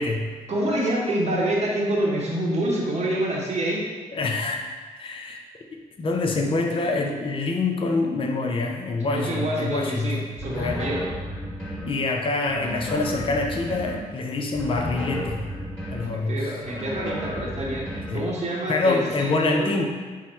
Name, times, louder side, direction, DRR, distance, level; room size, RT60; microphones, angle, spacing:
voice 1, 0.5-3.8 9.0-11.1 16.1-19.7, right 1 dB, 45° right, -4 dB, 0.9 m, -27 dB
voice 2, 4.1-4.6 5.0-5.4 5.7-10.3 10.6-10.9 11.9-15.4 15.9-16.5 18.1-18.3 18.7-19.9, left 3 dB, 35° left, 1 dB, 0.5 m, -25 dB
sound 1, 10.4-12.0 12.5-14.0 14.5-16.1 16.6-18.2, equal, 5° left, 1.3 m, -33 dB
4.4 x 2.1 x 4.2 m, 1.4 s
supercardioid pair, 50°, 15 cm